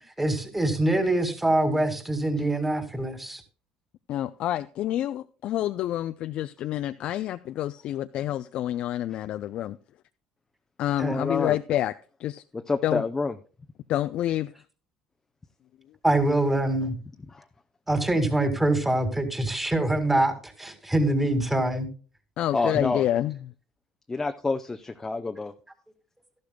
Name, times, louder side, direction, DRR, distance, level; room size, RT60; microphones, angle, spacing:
voice 1, 0.2-3.4 11.0-11.2 16.0-17.0 17.9-21.9 22.7-22.9, right 1 dB, 10° right, 2.0 m, -24 dB
voice 2, 4.1-9.8 10.8-11.9 12.2-12.4 12.8-13.0 13.9-14.5 22.4-23.4, left 12 dB, 60° left, 0.4 m, -28 dB
voice 3, 11.1-11.6 12.5-13.4 17.3-17.4 22.5-23.1 24.1-25.5, left 3 dB, 20° left, 0.6 m, -28 dB
13.0 x 12.0 x 2.2 m
supercardioid pair, 90°, 2 cm